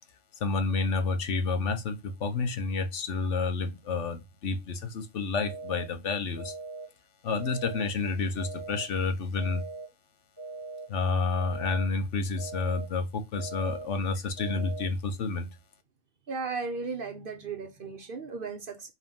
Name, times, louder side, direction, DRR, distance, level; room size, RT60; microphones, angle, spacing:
voice 1, 0.4-6.5 7.2-9.6 10.9-15.5, left 4 dB, 70° left, 1.3 m, -30 dB
sound 1, 5.4-5.9 6.4-6.9 7.4-7.9 8.4-8.9 9.4-9.9 10.4-10.9 11.4-11.9 12.4-12.9 13.4-13.9 14.4-14.9, right 4 dB, 15° right, 2.0 m, -40 dB
voice 2, 16.3-18.9, right 4 dB, 50° right, 1.0 m, -35 dB
5.5 x 3.2 x 5.4 m
omnidirectional pair, 1.3 m